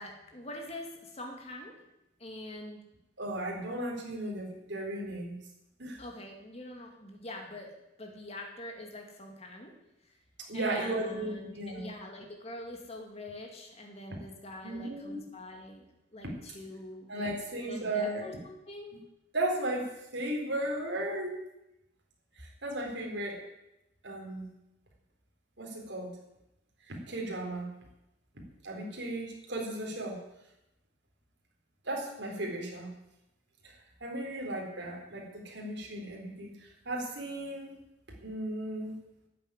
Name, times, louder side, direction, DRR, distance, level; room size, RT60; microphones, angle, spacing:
voice 1, 0.0-1.7 2.2-2.8 6.0-7.7 8.0-9.7 10.0-10.2 10.5-15.9 16.1-17.3 17.6-18.9, left 1 dB, 30° left, 1 dB, 2.2 m, -44 dB
voice 2, 3.2-5.3 5.8-6.0 10.5-11.9 14.6-15.2 17.1-18.3 19.3-21.4 22.3-23.4 24.0-24.5 25.6-26.2 26.9-27.7 28.6-30.2 31.8-32.9 33.6-37.7 38.2-38.9, right 1 dB, 60° right, 0 dB, 4.1 m, -35 dB
12.5 x 7.8 x 9.9 m, 0.89 s
head